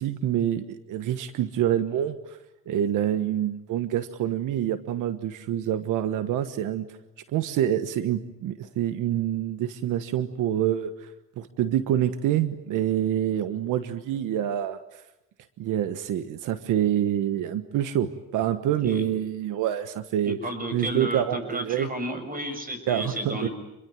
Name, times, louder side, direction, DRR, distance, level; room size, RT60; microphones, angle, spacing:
voice 1, 0.0-2.2 2.7-6.9 7.3-11.1 11.4-15.0 15.6-20.4 20.7-21.9 22.9-23.5, right 11 dB, 90° right, 11 dB, 1.3 m, -26 dB
voice 2, 20.3-23.5, equal, 30° right, 9 dB, 6.8 m, -32 dB
27.5 x 22.5 x 9.1 m, 0.90 s
cardioid pair, 90°, 30 cm